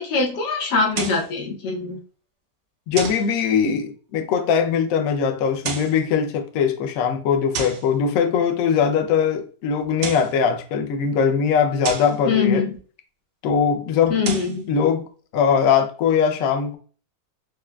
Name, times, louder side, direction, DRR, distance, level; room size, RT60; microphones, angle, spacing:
voice 1, 0.0-2.0 12.2-12.8 14.1-14.7, left 4 dB, 85° left, 1.5 m, -23 dB
sound 1, 0.9-1.3 3.0-3.3 5.5-6.0 7.5-7.9 9.8-10.4 11.8-12.2 14.1-14.6, right 5 dB, 70° right, 0.6 m, -30 dB
voice 2, 2.9-12.6 13.4-14.2 14.7-15.1 15.3-16.8, left 7 dB, 70° left, 0.8 m, -21 dB
4.9 x 2.2 x 2.2 m
omnidirectional pair, 1.8 m